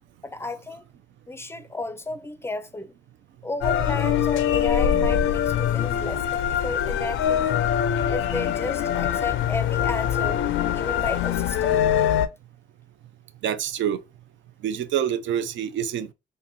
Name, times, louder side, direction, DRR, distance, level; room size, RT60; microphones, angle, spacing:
voice 1, 0.2-0.8 1.3-2.9 3.4-7.7 8.1-10.4 10.7-11.8, left 2 dB, 10° left, 0.5 m, -33 dB
sound 1, 3.6-12.3, left 9 dB, 75° left, 0.5 m, -23 dB
voice 2, 13.4-14.0 14.6-16.1, right 9 dB, 70° right, 0.5 m, -26 dB
2.9 x 2.6 x 3.9 m
cardioid pair, 90°, 20 cm